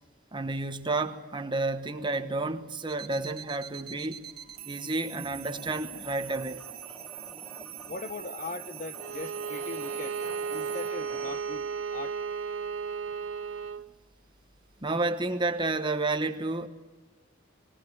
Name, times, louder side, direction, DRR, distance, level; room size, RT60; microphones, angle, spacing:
voice 1, 0.3-4.2 4.6-6.6 14.8-16.7, right 2 dB, 25° right, 1.1 m, -30 dB
sound 1, 2.9-14.9, right 12 dB, 50° right, 1.8 m, -45 dB
voice 2, 4.4-5.8 6.9-12.2 12.7-13.7 15.3-15.4, left 3 dB, 40° left, 1.0 m, -43 dB
sound 2, 5.4-11.4, right 1 dB, 5° left, 1.0 m, -50 dB
Bowed string instrument, 8.9-13.9, right 6 dB, 80° right, 0.6 m, -34 dB
19.5 x 18.0 x 9.7 m
head